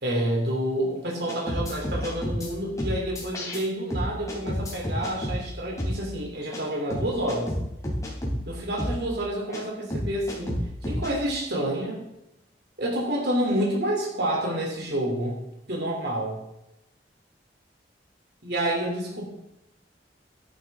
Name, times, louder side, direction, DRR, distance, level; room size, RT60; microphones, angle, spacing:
voice 1, 0.0-7.6 8.5-12.0 12.8-15.4 15.7-16.4 18.4-19.3, right 1 dB, 60° right, -1 dB, 3.1 m, -28 dB
sound 1, 1.3-2.5 2.8-3.6 3.9-5.4 5.8-6.0 6.5-6.6 6.9-8.4 8.8-9.0 9.5-9.6 9.9-11.1, equal, 20° left, 3.4 m, -29 dB
13.5 x 11.0 x 3.6 m, 0.88 s
head